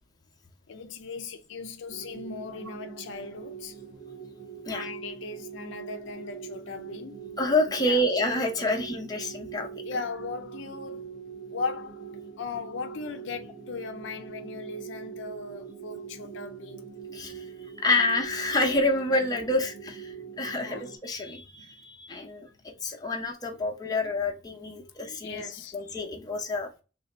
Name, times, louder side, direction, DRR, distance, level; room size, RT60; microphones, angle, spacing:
voice 1, 0.7-3.7 4.7-7.2 7.8-8.0 9.8-11.2 11.5-16.8 20.6-20.9 21.6-21.7 25.2-25.8, left 4 dB, 70° left, 0.5 m, -38 dB
sound 1, 1.9-21.0, right 7 dB, 60° right, 1.5 m, -43 dB
voice 2, 7.4-9.7 17.1-17.3 17.8-22.5 22.8-25.4 25.7-26.7, left 2 dB, 20° left, 0.8 m, -28 dB
3.3 x 2.7 x 4.1 m
head